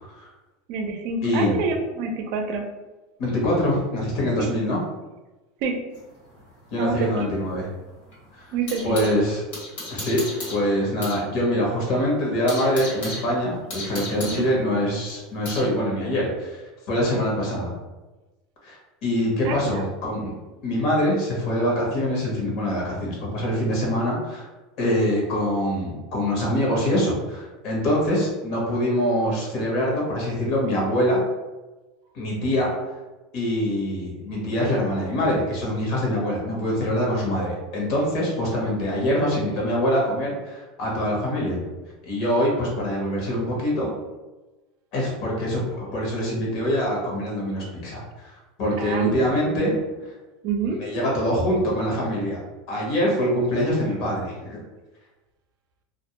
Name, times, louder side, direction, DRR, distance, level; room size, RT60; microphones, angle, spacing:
voice 1, 0.7-2.7 4.4-4.5 5.6-5.8 6.8-7.1 7.4-7.5 8.5-9.2 14.2-14.4 19.4-19.9 48.8-49.7 50.4-50.8, right 4 dB, 60° right, 4 dB, 0.4 m, -27 dB
voice 2, 1.2-1.6 3.2-4.8 6.7-7.7 8.3-8.4 8.8-9.4 9.9-10.2 10.5-16.6 16.9-17.7 18.6-20.3 20.6-24.5 24.8-31.2 32.1-32.7 33.3-41.6 42.0-43.9 44.9-48.0 48.6-49.7 50.8-52.4 52.7-54.6, equal, 55° left, -3 dB, 1.1 m, -24 dB
sound 1, 5.9-9.2 9.5-11.3 11.6-11.7 12.1-15.7, left 1 dB, 80° left, 1.2 m, -36 dB
2.4 x 2.1 x 3.0 m, 1.1 s
supercardioid pair, 135°, 0 cm